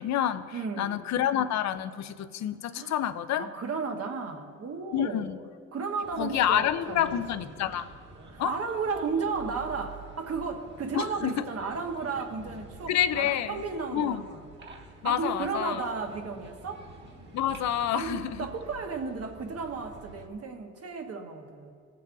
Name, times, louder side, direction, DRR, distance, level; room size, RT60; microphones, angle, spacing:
voice 1, 0.0-3.5 4.9-5.4 6.2-7.9 8.4-8.5 10.9-11.4 12.9-13.6 13.9-14.3 15.0-15.9 17.3-18.4, left 10 dB, 65° left, 11 dB, 0.6 m, -28 dB
voice 2, 0.5-1.1 2.7-2.9 3.3-5.3 5.7-7.5 8.3-14.4 15.0-16.9 17.9-21.7, right 4 dB, 50° right, 4 dB, 1.3 m, -34 dB
sound 1, 6.0-20.3, right 3 dB, 35° right, 1.8 m, -48 dB
18.0 x 7.5 x 2.7 m, 2.3 s
cardioid pair, 90°, 30 cm